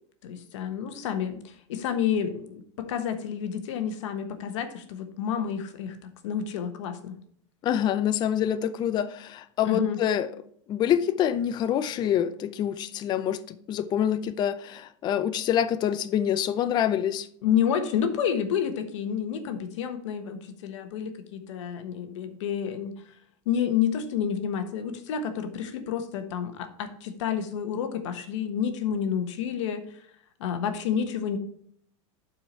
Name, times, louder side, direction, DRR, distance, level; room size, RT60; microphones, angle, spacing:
voice 1, 0.2-7.2 9.6-10.0 17.4-23.1 23.4-30.0 30.4-31.4, left 8 dB, 75° left, 1.3 m, -29 dB
voice 2, 7.6-10.3 10.7-17.3, left 10 dB, 30° left, 0.5 m, -26 dB
11.0 x 4.6 x 4.3 m
supercardioid pair, 140°, 16 cm